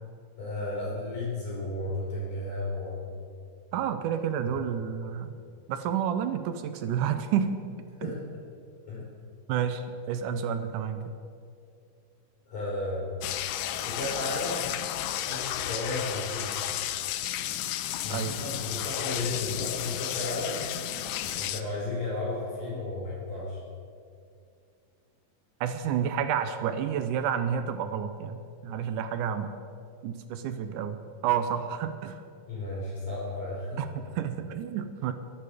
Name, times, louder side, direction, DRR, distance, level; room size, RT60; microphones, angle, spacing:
voice 1, 0.4-3.1 8.0-8.2 8.9-9.0 12.5-13.1 13.8-14.8 15.2-16.5 18.0-20.7 21.2-23.6 32.5-33.8, left 2 dB, 55° left, -8 dB, 5.7 m, -33 dB
voice 2, 3.7-5.4 5.7-7.6 8.0-8.1 9.5-11.0 18.1-18.4 25.6-29.5 30.0-31.0 31.2-32.2 33.8-35.1, right 8 dB, 75° right, 9 dB, 2.1 m, -30 dB
sound 1, 13.2-21.6, left 12 dB, 90° left, 1.5 m, -33 dB
23.5 x 9.0 x 5.0 m, 2.3 s
omnidirectional pair, 3.9 m